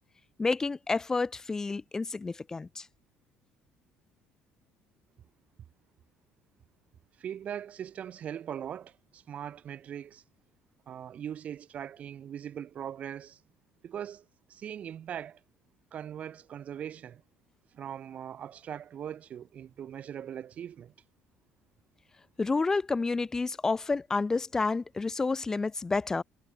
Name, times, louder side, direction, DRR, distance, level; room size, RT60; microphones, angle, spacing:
voice 1, 0.4-2.9 22.4-26.2, left 3 dB, 15° left, 0.8 m, -29 dB
voice 2, 7.2-10.2 10.9-13.4 13.8-15.4 15.9-17.2 17.7-20.9, right 9 dB, 40° right, 1.5 m, -40 dB
cardioid pair, 160°, 4 cm